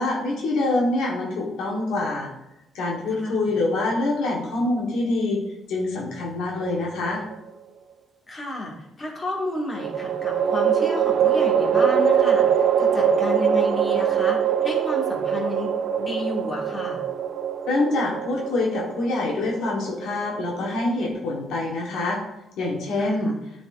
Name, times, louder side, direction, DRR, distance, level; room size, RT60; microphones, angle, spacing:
voice 1, 0.0-2.3 2.7-5.4 5.7-7.2 17.7-22.2 22.6-23.3, left 2 dB, 80° left, -3 dB, 1.3 m, -25 dB
voice 2, 3.1-3.5 8.3-17.0 23.0-23.3, left 1 dB, 30° left, -2 dB, 2.0 m, -32 dB
sound 1, 6.7-7.5 9.8-21.1, right 8 dB, 65° right, 0.4 m, -23 dB
9.9 x 4.1 x 2.6 m, 0.88 s
cardioid pair, 75°, 0 cm